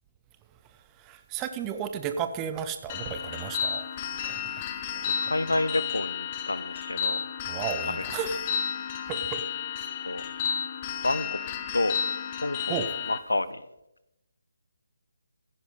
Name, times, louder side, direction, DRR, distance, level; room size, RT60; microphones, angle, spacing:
voice 1, 1.0-3.9 4.2-4.4 5.2-5.3 7.5-8.5 9.1-9.4 12.7-12.9, right 7 dB, 15° right, 8 dB, 0.7 m, -33 dB
sound 1, 2.9-13.2, left 7 dB, 25° left, 1.0 m, -32 dB
voice 2, 5.1-7.2 7.8-7.9 10.0-10.2 11.0-11.4 11.7-11.9 12.4-12.8 13.1-13.6, left 2 dB, 70° left, 16 dB, 0.7 m, -29 dB
15.5 x 9.9 x 4.2 m, 0.89 s
figure-of-eight pair, 145°, 0 cm